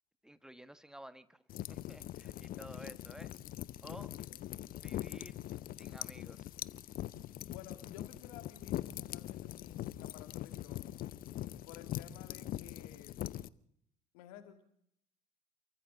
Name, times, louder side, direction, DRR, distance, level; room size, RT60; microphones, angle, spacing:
voice 1, 0.2-3.3 3.8-4.1 4.8-5.4 5.8-6.5, right 1 dB, 5° right, 13 dB, 1.5 m, -53 dB
sound 1, 1.5-13.5, left 13 dB, 50° left, 0.7 m, -42 dB
voice 2, 4.2-4.6 7.5-10.9 11.6-13.2 14.1-14.6, left 10 dB, 70° left, 7 dB, 2.6 m, -54 dB
28.5 x 23.5 x 3.9 m, 0.72 s
figure-of-eight pair, 55°, 19 cm